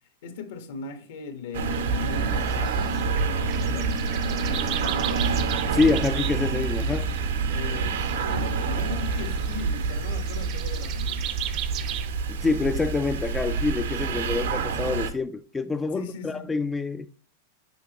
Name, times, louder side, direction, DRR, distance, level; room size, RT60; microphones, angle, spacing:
voice 1, 0.2-5.1 6.8-7.0 7.5-11.2 15.9-16.5, left 5 dB, 70° left, 1.3 m, -38 dB
sound 1, 1.5-15.1, right 4 dB, 85° right, 1.0 m, -27 dB
sound 2, 1.7-12.1, right 12 dB, 40° right, 0.6 m, -37 dB
voice 2, 5.7-7.1 12.3-17.1, left 3 dB, 10° left, 0.3 m, -26 dB
7.0 x 5.6 x 3.0 m
supercardioid pair, 145°, 0 cm